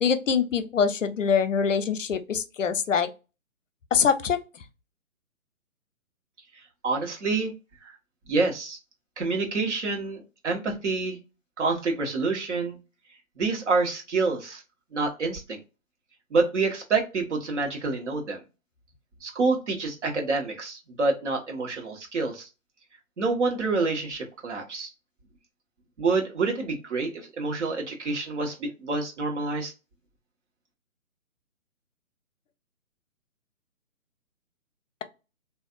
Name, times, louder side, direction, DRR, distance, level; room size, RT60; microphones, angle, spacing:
voice 1, 0.0-3.1 3.9-4.4, left 6 dB, 60° left, 0.6 m, -24 dB
voice 2, 6.8-7.5 7.8-7.9 8.3-8.8 9.2-11.2 11.6-12.8 13.4-14.6 14.9-15.6 16.3-18.4 19.2-22.5 23.2-24.9 26.0-29.7, right 3 dB, 55° right, 1.2 m, -27 dB
3.4 x 2.6 x 2.4 m
figure-of-eight pair, 145°, 43 cm